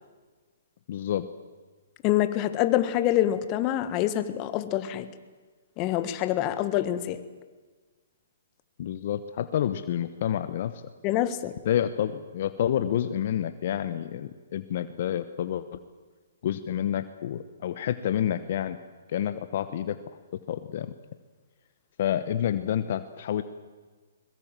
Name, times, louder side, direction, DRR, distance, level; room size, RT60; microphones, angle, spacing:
voice 1, 0.9-1.3 8.8-10.8 11.6-15.8 16.4-18.8 19.1-20.0 20.5-20.9 22.0-23.4, left 10 dB, 55° left, 12 dB, 1.1 m, -29 dB
voice 2, 2.0-5.1 5.8-7.2 11.0-11.5, left 13 dB, 30° left, 12 dB, 1.6 m, -26 dB
22.5 x 21.5 x 7.6 m, 1.4 s
hypercardioid pair, 135°, 0 cm